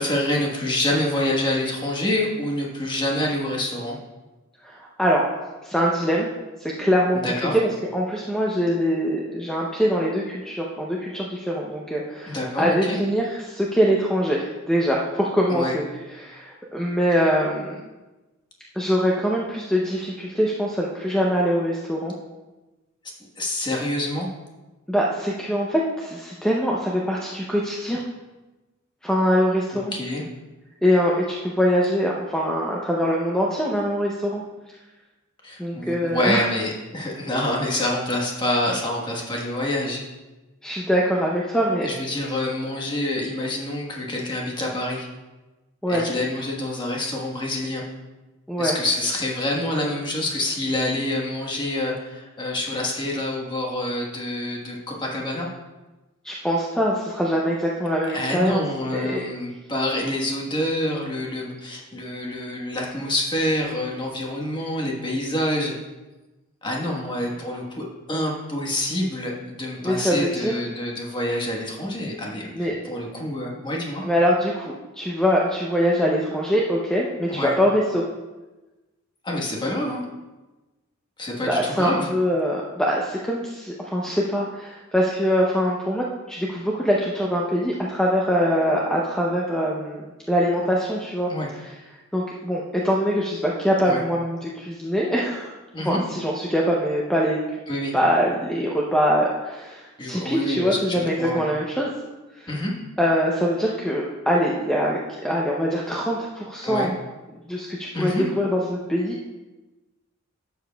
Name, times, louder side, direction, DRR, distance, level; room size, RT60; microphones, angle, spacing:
voice 1, 0.0-4.0 7.2-7.6 12.3-13.0 15.5-15.8 23.4-24.3 29.9-30.2 35.4-40.0 41.8-45.1 45.9-47.8 48.6-55.5 58.0-65.8 66.6-74.0 77.3-77.5 79.2-80.0 81.2-82.1 91.3-91.5 93.9-94.0 95.7-96.0 97.7-97.9 100.0-101.4 102.5-102.7 106.6-106.9 107.9-108.2, left 1 dB, 20° left, -1 dB, 1.2 m, -27 dB
voice 2, 4.6-5.3 5.6-6.3 6.6-17.8 18.7-22.1 24.9-28.0 29.0-29.9 30.8-34.4 35.6-36.5 40.6-42.0 45.8-46.1 48.5-48.7 56.2-59.2 69.8-70.6 72.5-72.8 74.0-78.0 81.5-91.7 92.1-95.5 95.8-97.4 97.9-101.9 102.4-102.5 103.0-106.9 107.5-109.2, equal, 5° left, -3 dB, 0.6 m, -23 dB
12.0 x 7.0 x 2.3 m, 1.1 s
head